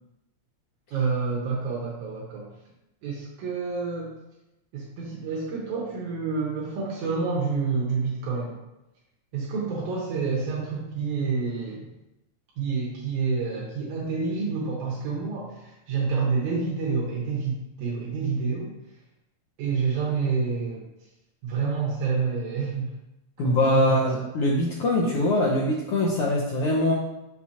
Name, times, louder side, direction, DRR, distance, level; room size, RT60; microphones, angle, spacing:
voice 1, 0.9-2.5 3.0-4.1 4.7-8.6 9.3-11.9 12.6-18.7 19.6-20.8 21.4-22.9 23.4-24.0, right 5 dB, 85° right, -4 dB, 2.4 m, -28 dB
voice 2, 23.4-26.9, left 1 dB, 70° left, -3 dB, 1.4 m, -23 dB
6.3 x 5.8 x 2.8 m, 0.93 s
omnidirectional pair, 3.3 m